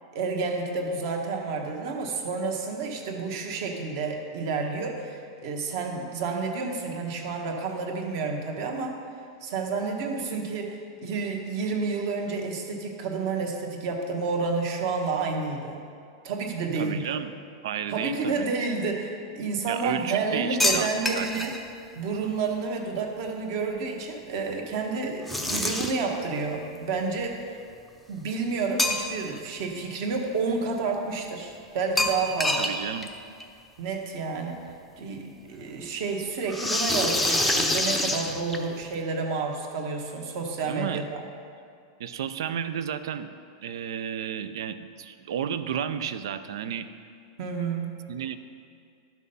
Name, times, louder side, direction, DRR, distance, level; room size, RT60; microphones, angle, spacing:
voice 1, 0.1-9.0 9.4-15.8 16.2-17.2 17.9-21.5 21.9-27.6 28.1-32.7 33.8-34.6 35.0-41.2 47.4-48.0, right 4 dB, 45° right, 2 dB, 1.3 m, -30 dB
voice 2, 16.7-17.3 17.6-18.5 19.7-21.5 32.6-33.1 40.7-41.0 42.0-43.3 43.6-46.9 48.1-48.4, right 8 dB, 75° right, 12 dB, 0.5 m, -32 dB
sound 1, 20.6-21.6 25.3-26.1 28.8-29.4 29.7-29.8 32.0-32.8 33.0-33.1 33.4-33.5 34.7-34.8 36.5-38.8, left 1 dB, ahead, 0.5 m, -26 dB
12.5 x 6.2 x 5.5 m, 2.4 s
supercardioid pair, 175°, 2 cm